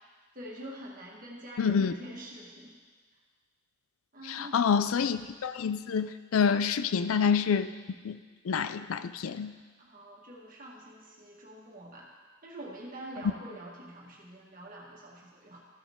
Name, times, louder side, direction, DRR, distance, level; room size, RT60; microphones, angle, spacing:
voice 1, 0.3-2.8 4.1-4.7 9.8-12.2 12.4-15.6, right 1 dB, 40° right, -4 dB, 1.9 m, -45 dB
voice 2, 1.6-1.9 4.3-7.7 8.0-8.2 8.4-9.5, left 6 dB, 75° left, 12 dB, 0.4 m, -27 dB
14.5 x 7.0 x 3.7 m, 1.4 s
head